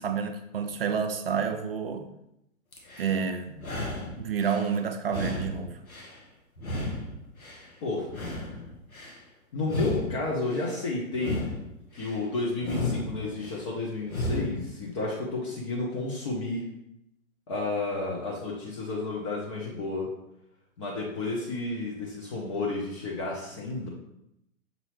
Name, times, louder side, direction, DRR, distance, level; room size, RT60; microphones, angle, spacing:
voice 1, 0.0-2.1 3.0-3.6 4.2-5.8, right 6 dB, 45° right, 0.5 m, -29 dB
sound 1, 2.7-3.2 3.6-4.7 5.1-6.2 6.6-7.7 8.1-9.2 9.6-10.7 11.1-12.2 12.6-13.6 14.0-14.7, left 2 dB, 80° left, 1.2 m, -34 dB
voice 2, 9.5-11.5 11.9-16.6 17.5-20.1 20.8-23.9, left 2 dB, 25° left, 0.6 m, -31 dB
6.2 x 2.7 x 3.1 m
figure-of-eight pair, 120°, 42 cm